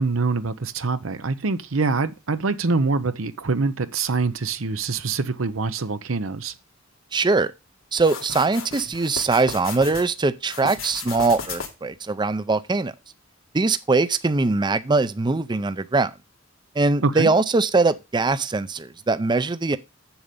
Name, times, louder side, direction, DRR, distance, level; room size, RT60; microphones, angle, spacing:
voice 1, 0.0-6.5 17.0-17.3, right 4 dB, 90° right, 0.8 m, -24 dB
voice 2, 7.1-7.5 7.9-12.9 13.5-16.1 16.8-19.8, right 3 dB, 20° right, 0.5 m, -22 dB
sound 1, 8.0-10.1 10.5-11.9, left 5 dB, 85° left, 2.5 m, -35 dB
7.7 x 7.1 x 5.2 m
head